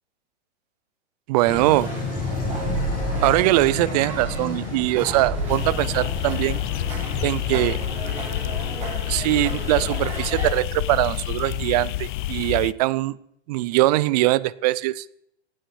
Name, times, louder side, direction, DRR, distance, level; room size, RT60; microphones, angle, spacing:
voice 1, 1.3-1.9 3.2-6.6 7.2-7.8 9.1-13.1 13.5-15.0, right 18 dB, 35° right, 20 dB, 0.5 m, -22 dB
sound 1, 1.5-7.3, left 3 dB, 25° left, 4.9 m, -31 dB
sound 2, 1.5-10.5, right 2 dB, 20° right, 5.8 m, -33 dB
sound 3, 5.5-12.7, left 16 dB, 45° left, 0.5 m, -28 dB
16.5 x 12.5 x 4.8 m, 0.73 s
hypercardioid pair, 145°, 36 cm